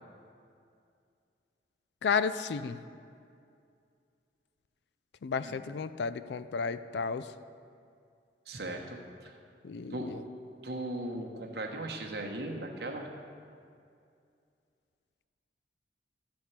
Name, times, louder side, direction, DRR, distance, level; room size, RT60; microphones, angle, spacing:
voice 1, 2.0-2.8 5.2-7.3 9.6-10.2, left 5 dB, 70° left, 13 dB, 0.4 m, -32 dB
voice 2, 8.5-9.4 9.9-10.2 10.6-13.1, right 1 dB, 60° right, 2 dB, 1.1 m, -38 dB
12.5 x 4.4 x 8.1 m, 2.4 s
head